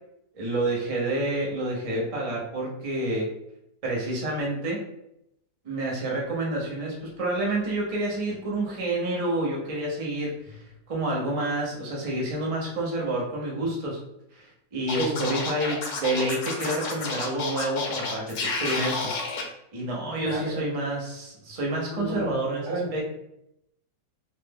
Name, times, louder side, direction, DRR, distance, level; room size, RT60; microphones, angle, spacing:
voice 1, 0.3-3.3 3.8-4.8 5.6-10.6 10.9-14.0 14.3-19.2 19.7-23.0, right 1 dB, 40° right, -3 dB, 0.5 m, -29 dB
Scratching (performance technique), 14.9-19.4, left 4 dB, 70° left, 1.2 m, -30 dB
voice 2, 14.9-15.2 20.2-20.6 21.9-22.3 22.7-23.0, right 2 dB, 65° right, -2 dB, 1.3 m, -31 dB
3.2 x 2.2 x 3.4 m, 0.81 s
omnidirectional pair, 1.9 m